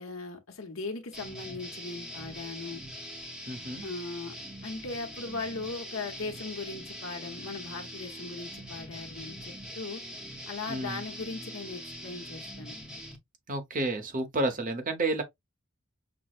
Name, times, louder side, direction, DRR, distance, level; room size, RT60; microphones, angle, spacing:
voice 1, 0.0-2.8 3.8-4.4 4.6-10.0 10.5-12.8, left 3 dB, 65° left, 1.1 m, -38 dB
sound 1, 1.1-13.2, equal, 5° right, 0.8 m, -43 dB
voice 2, 3.5-3.8 10.6-11.0 13.5-15.2, right 2 dB, 40° right, 0.9 m, -30 dB
6.0 x 2.1 x 2.4 m
head